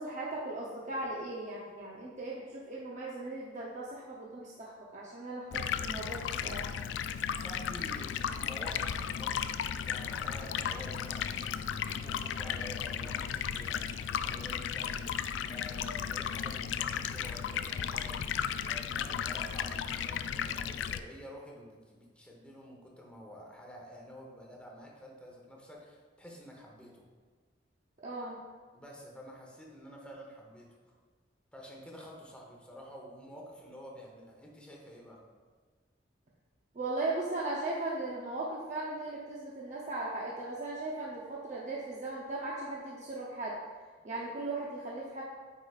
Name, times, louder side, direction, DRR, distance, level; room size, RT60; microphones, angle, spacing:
voice 1, 0.0-6.6 28.0-28.4 36.7-43.6 44.0-45.2, right 2 dB, 45° right, -4 dB, 0.7 m, -38 dB
Stream, 5.5-21.0, left 8 dB, 90° left, 0.3 m, -35 dB
voice 2, 7.4-15.1 15.5-27.0 28.7-30.8 31.5-35.2, equal, 5° left, -2 dB, 1.0 m, -49 dB
8.7 x 4.9 x 2.4 m, 1.5 s
head